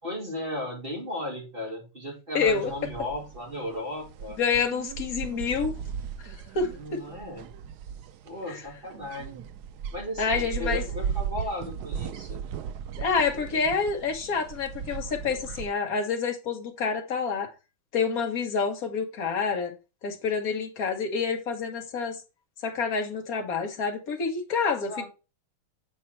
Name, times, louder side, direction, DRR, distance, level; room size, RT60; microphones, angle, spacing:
voice 1, 0.0-4.4 6.8-7.5 8.2-9.4 9.9-12.5 24.8-25.0, left 1 dB, 25° right, 3.0 m, -35 dB
voice 2, 2.3-2.7 4.4-5.7 6.2-7.0 8.5-8.6 10.2-10.8 13.0-17.5 17.9-19.7 20.0-22.2 22.6-25.0, left 5 dB, 45° left, 1.6 m, -28 dB
sound 1, 2.5-15.7, right 7 dB, 85° right, 0.8 m, -37 dB
7.7 x 4.6 x 4.4 m
omnidirectional pair, 2.4 m